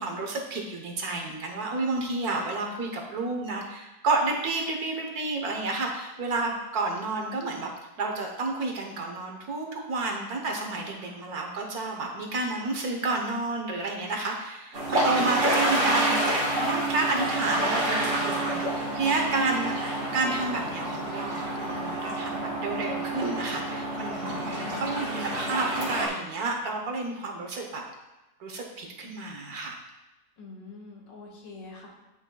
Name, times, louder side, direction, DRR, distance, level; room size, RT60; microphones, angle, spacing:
voice 1, 0.0-7.7 8.0-19.7 20.1-27.8 28.4-29.8, right 3 dB, 60° right, 1 dB, 1.5 m, -30 dB
sound 1, 14.7-26.1, right 1 dB, 45° right, 2.0 m, -28 dB
voice 2, 24.2-24.9 30.4-31.9, left 3 dB, 90° left, -2 dB, 2.2 m, -44 dB
11.0 x 5.7 x 2.3 m, 1.0 s
omnidirectional pair, 1.9 m